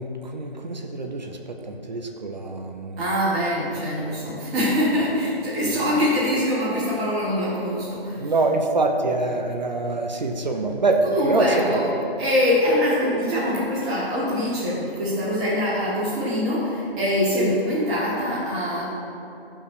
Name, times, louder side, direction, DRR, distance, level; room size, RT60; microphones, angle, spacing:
voice 1, 0.0-3.1 5.6-6.0 8.2-12.0 17.4-17.5, right 2 dB, 45° right, 3 dB, 0.8 m, -25 dB
voice 2, 3.0-8.3 11.0-11.8 12.2-18.9, left 1 dB, 5° right, -10 dB, 0.8 m, -24 dB
15.0 x 5.5 x 4.9 m, 2.9 s
figure-of-eight pair, 165°, 31 cm